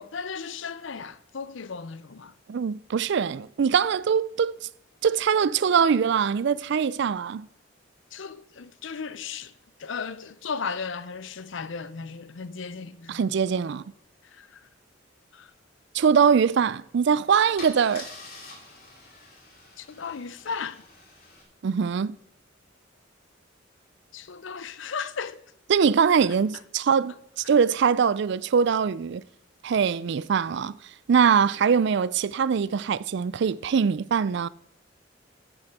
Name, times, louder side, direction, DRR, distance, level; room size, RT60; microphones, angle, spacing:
voice 1, 0.0-2.3 8.1-9.5 9.8-13.2 14.3-14.6 15.3-15.5 19.8-20.8 24.1-25.4, left 5 dB, 70° left, 0.6 m, -35 dB
voice 2, 2.5-4.5 5.0-7.5 13.1-13.8 15.9-18.1 21.6-22.2 25.7-29.2 29.6-30.8 31.1-34.5, right 6 dB, 60° right, 0.4 m, -22 dB
Car / Engine starting / Idling, 16.8-17.0 17.6-21.4, left 3 dB, 50° left, 3.0 m, -45 dB
10.0 x 6.4 x 7.3 m
head